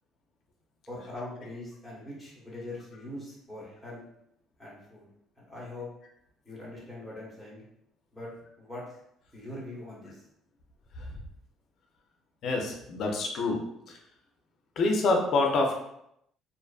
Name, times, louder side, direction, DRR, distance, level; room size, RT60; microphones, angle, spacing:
voice 1, 0.9-4.0 4.6-5.0 5.4-5.9 6.4-7.6 8.1-8.3 8.6-8.8 9.3-10.2, left 1 dB, ahead, -7 dB, 1.1 m, -42 dB
voice 2, 12.4-14.0 14.8-15.7, left 3 dB, 55° left, 1 dB, 0.5 m, -27 dB
2.5 x 2.4 x 2.3 m, 0.77 s
cardioid pair, 120°, 0 cm